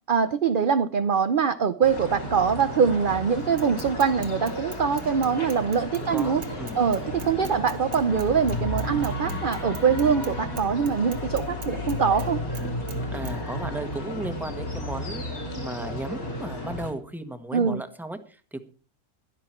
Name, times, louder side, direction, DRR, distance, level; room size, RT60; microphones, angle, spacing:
voice 1, 0.1-6.4 6.8-12.4 17.5-17.8, right 6 dB, 50° right, 10 dB, 0.7 m, -23 dB
sound 1, 1.8-16.9, left 1 dB, 65° left, 3.9 m, -33 dB
Bicycle / Mechanisms, 3.6-10.3 10.6-12.3 12.5-13.0 13.2-13.3, right 6 dB, 70° right, 1.9 m, -44 dB
voice 2, 6.0-6.8 13.1-18.6, right 1 dB, ahead, 8 dB, 1.2 m, -35 dB
16.5 x 12.0 x 4.4 m, 0.38 s
omnidirectional pair, 1.6 m